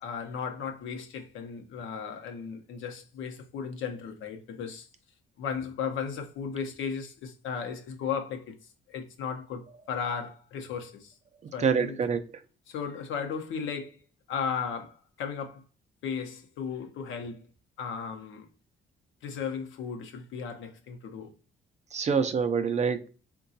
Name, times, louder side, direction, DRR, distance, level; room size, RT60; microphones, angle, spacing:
voice 1, 0.0-4.9 5.4-8.5 8.9-11.1 11.5-12.0 12.7-14.0 14.3-15.6 16.0-17.5 17.8-18.5 19.2-21.3, left 6 dB, 75° left, 0.7 m, -35 dB
voice 2, 11.6-12.2 21.9-23.1, right 6 dB, 35° right, 0.4 m, -26 dB
3.7 x 2.2 x 2.6 m
cardioid pair, 90°, 20 cm